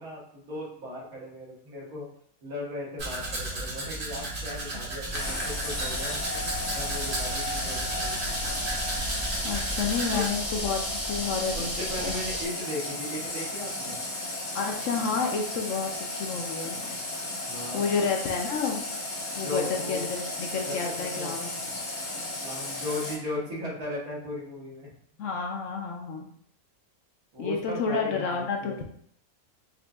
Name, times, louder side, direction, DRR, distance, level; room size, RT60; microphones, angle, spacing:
voice 1, 0.0-2.1 2.4-6.4 6.7-8.2 10.1-10.3 11.5-14.0 17.5-17.8 19.4-20.0 20.7-21.7 22.4-24.9 27.3-28.8, left 1 dB, 80° right, -4 dB, 1.6 m, -37 dB
Domestic sounds home sounds, 3.0-10.3, right 2 dB, 50° right, 1.1 m, -34 dB
sound 1, 5.0-12.5, equal, 15° right, 0.5 m, -35 dB
Water tap faucet, 5.1-23.1, left 2 dB, 90° left, 1.6 m, -35 dB
voice 2, 9.4-12.1 14.5-16.8 17.7-18.8 19.3-21.6 25.2-26.3 27.4-28.8, left 5 dB, 65° left, 2 dB, 0.8 m, -30 dB
5.1 x 2.5 x 2.3 m, 0.63 s
omnidirectional pair, 1.5 m